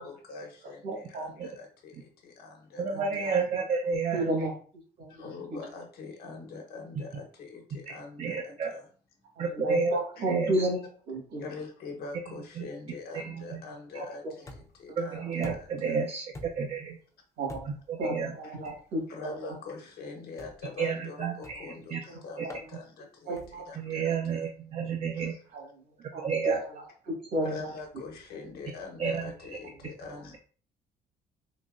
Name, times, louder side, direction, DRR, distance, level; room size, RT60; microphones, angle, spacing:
voice 1, 0.0-3.3 5.1-8.9 10.2-10.3 11.4-16.0 18.4-18.6 19.1-24.5 25.0-25.4 27.4-30.4, left 4 dB, 65° left, 2 dB, 1.1 m, -44 dB
voice 2, 0.8-1.4 2.9-4.5 5.0-5.6 9.4-11.4 13.9-14.3 14.9-15.0 15.3-15.5 17.4-19.6 22.1-22.6 23.2-23.6 25.5-25.8 26.1-27.7, right 1 dB, 75° right, -1 dB, 1.7 m, -34 dB
voice 3, 2.8-4.3 8.2-8.7 9.4-10.0 10.3-10.7 12.6-12.7 13.2-13.6 15.0-17.0 17.9-18.3 18.6-18.7 20.8-22.0 22.4-22.5 23.8-25.3 26.0-26.6 29.0-29.2, right 5 dB, 40° right, 4 dB, 0.4 m, -30 dB
sound 1, 14.5-14.9 15.4-15.9 16.3-16.8 17.5-17.9 18.6-18.9 20.4-20.7 21.4-21.8 22.5-22.7 23.4-23.7, left 2 dB, 20° left, 0.6 m, -46 dB
3.8 x 2.8 x 2.5 m, 0.43 s
cardioid pair, 110°, 17 cm